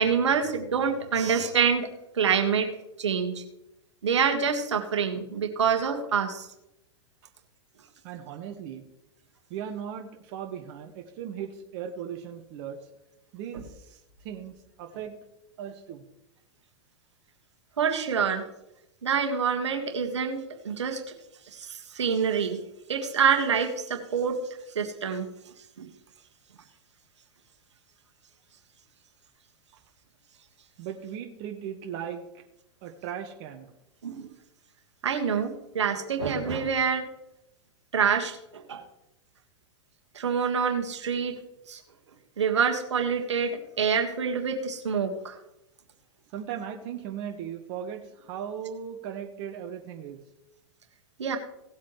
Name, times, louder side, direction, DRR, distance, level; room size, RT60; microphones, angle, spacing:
voice 1, 0.0-1.9 2.1-2.7 3.0-3.4 4.0-6.5 17.8-18.4 19.0-21.0 21.5-22.6 22.9-24.4 24.7-25.3 25.8-25.9 34.0-34.3 35.0-37.1 37.9-38.8 40.1-41.4 41.7-41.8 42.4-45.3 51.2-51.4, right 6 dB, 80° right, 4 dB, 1.7 m, -26 dB
voice 2, 8.0-8.8 9.5-12.8 13.3-13.6 14.2-15.1 15.6-16.0 30.8-32.2 32.8-33.7 46.3-50.2, right 8 dB, 50° right, 4 dB, 1.4 m, -37 dB
18.0 x 8.3 x 3.2 m, 0.88 s
hypercardioid pair, 105°, 15 cm